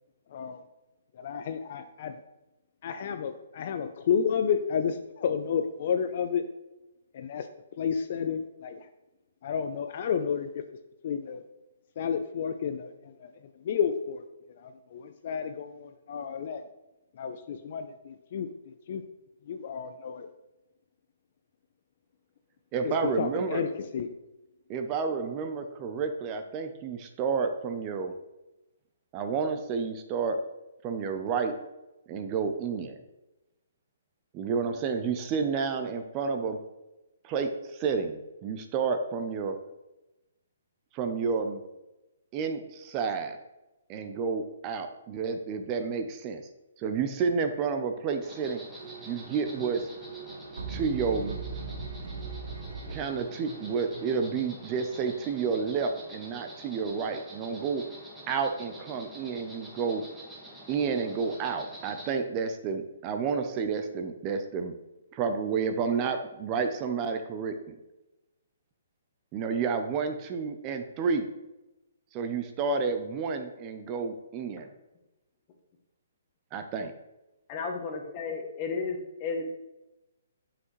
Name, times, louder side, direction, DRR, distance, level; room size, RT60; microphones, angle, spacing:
voice 1, 0.3-0.6 1.1-2.1 2.8-6.4 7.1-7.5 7.8-8.9 9.4-10.6 11.0-11.4 12.0-14.2 14.6-16.7 17.1-19.0 19.5-20.3 22.8-24.1, left 7 dB, 50° left, 8 dB, 0.5 m, -31 dB
voice 2, 22.7-23.6 24.7-28.1 29.1-30.4 30.8-31.5 32.1-33.0 34.3-36.6 37.2-39.6 40.9-41.6 42.3-43.4 43.9-46.4 46.8-48.6 49.1-49.9 50.7-51.4 52.9-57.8 58.3-60.0 60.7-64.8 65.1-67.8 69.3-71.2 72.1-74.7 76.5-76.9, right 5 dB, 25° right, 6 dB, 0.6 m, -30 dB
Insect, 48.2-62.1, right 1 dB, 5° right, 1.6 m, -47 dB
sound 1, 48.8-54.2, right 4 dB, 85° right, 0.9 m, -40 dB
voice 3, 77.5-79.4, left 4 dB, 30° left, 2 dB, 1.3 m, -33 dB
7.8 x 5.8 x 3.1 m, 0.99 s
hypercardioid pair, 150°, 0 cm